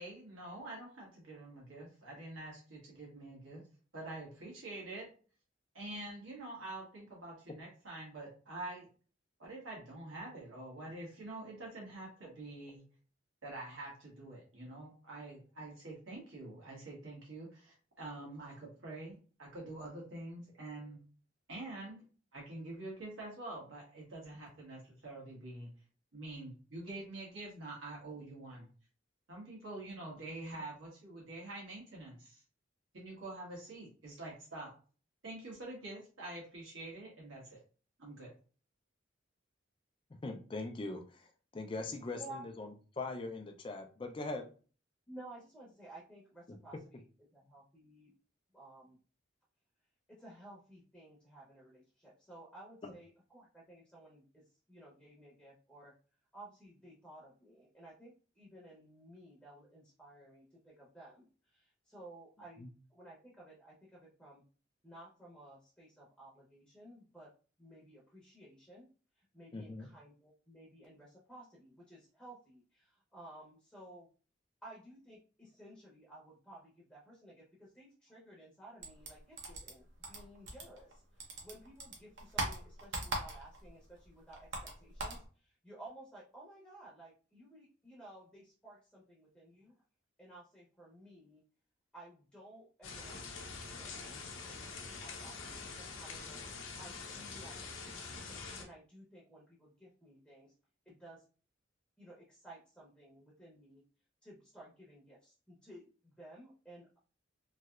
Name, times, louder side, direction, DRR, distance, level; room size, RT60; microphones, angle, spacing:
voice 1, 0.0-3.6 3.9-5.1 5.7-8.9 9.4-12.8 13.4-21.0 21.5-22.0 22.3-25.7 26.1-28.7 29.3-32.4 32.9-34.7 35.2-37.6 38.0-38.3, right 2 dB, 80° right, -4 dB, 1.4 m, -46 dB
voice 2, 40.2-41.2 41.5-42.7 43.0-44.4 52.8-52.9 69.5-69.9, left 3 dB, 25° left, 5 dB, 0.4 m, -41 dB
voice 3, 42.1-42.4 45.1-47.0 47.3-48.1 48.5-49.0 50.1-55.9 56.3-64.4 64.8-67.3 67.6-68.9 69.2-74.1 74.6-89.7 90.2-91.4 91.9-96.4 96.8-100.5 100.8-101.2 102.0-103.8 104.2-107.0, right 1 dB, 5° left, -5 dB, 0.7 m, -55 dB
sound 1, 78.8-80.9 81.2-83.7 84.0-85.2, right 2 dB, 65° right, 0.8 m, -40 dB
sound 2, 92.8-98.6, left 4 dB, 90° left, 0.6 m, -45 dB
3.1 x 2.8 x 2.3 m, 0.38 s
head